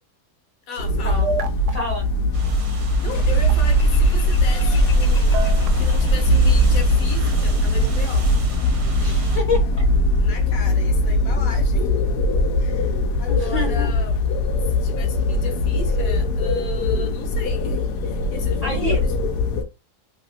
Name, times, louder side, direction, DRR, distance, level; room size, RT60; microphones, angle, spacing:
voice 1, 0.7-1.2 3.0-5.4 5.8-8.3 10.1-11.9 12.6-14.2 14.7-19.1, left 5 dB, 65° left, 1.2 m, -35 dB
sound 1, 0.8-19.6, left 2 dB, 90° left, 1.2 m, -20 dB
sound 2, 1.2-1.7 3.3-3.8 5.3-5.7 6.3-6.8, right 11 dB, 80° right, 1.1 m, -21 dB
voice 2, 1.7-2.0 9.0-9.9 13.3-13.9 18.6-19.0, left 3 dB, 35° left, 0.6 m, -27 dB
sound 3, 2.3-9.4, right 1 dB, 50° right, 0.4 m, -29 dB
3.1 x 2.8 x 2.8 m
omnidirectional pair, 1.7 m